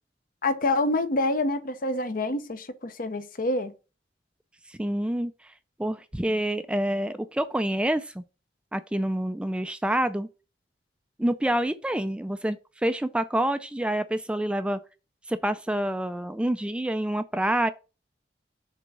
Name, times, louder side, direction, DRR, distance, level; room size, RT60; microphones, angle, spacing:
voice 1, 0.4-3.7, left 2 dB, 50° left, 0.8 m, -27 dB
voice 2, 4.7-5.5 5.8-8.2 8.7-10.3 11.2-14.8 15.3-17.7, right 1 dB, 5° right, 0.3 m, -27 dB
6.9 x 3.5 x 6.1 m
head